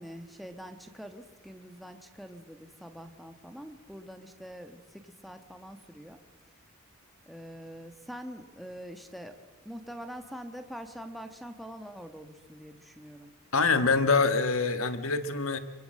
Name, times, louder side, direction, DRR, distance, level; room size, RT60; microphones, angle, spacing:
voice 1, 0.0-6.2 7.3-9.4 9.6-13.3, equal, ahead, 8 dB, 1.4 m, -44 dB
voice 2, 13.5-15.6, left 4 dB, 65° left, 10 dB, 1.6 m, -25 dB
25.0 x 24.0 x 7.6 m, 1.3 s
head